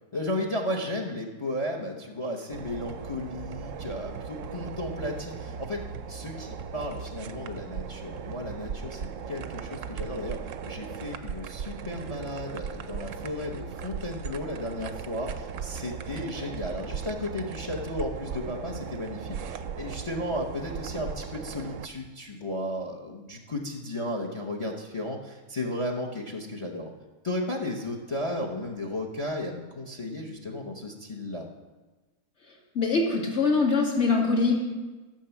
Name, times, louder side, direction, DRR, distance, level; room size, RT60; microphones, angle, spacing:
voice 1, 0.1-5.8 6.1-26.9 27.2-31.5, left 1 dB, 25° left, 2 dB, 0.8 m, -34 dB
sound 1, 2.5-21.9, right 7 dB, 65° right, 0.9 m, -38 dB
voice 2, 32.7-34.5, left 4 dB, 45° left, -1 dB, 2.3 m, -23 dB
13.5 x 6.2 x 7.1 m, 1.2 s
omnidirectional pair, 1.7 m